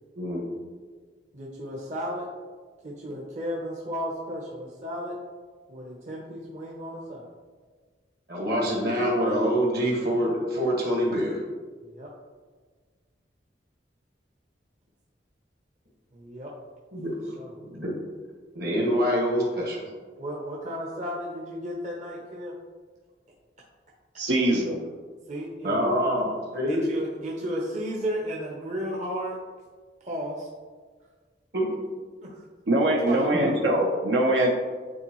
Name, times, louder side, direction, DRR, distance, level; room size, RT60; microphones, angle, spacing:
voice 1, 1.3-2.3 2.8-5.2 5.7-7.3 11.8-12.1 16.1-16.5 17.4-17.5 20.2-22.5 25.3-25.8 26.6-29.4 30.0-30.5 32.2-32.4 33.1-33.6, equal, 40° right, -3 dB, 0.7 m, -34 dB
voice 2, 8.3-11.4 16.9-17.9 18.6-19.9 25.6-26.9 31.5-31.7 33.4-33.5, equal, 60° right, -2 dB, 1.6 m, -26 dB
voice 3, 24.2-24.8 32.7-34.5, right 1 dB, 85° right, 0 dB, 0.7 m, -23 dB
8.6 x 3.7 x 3.0 m, 1.5 s
head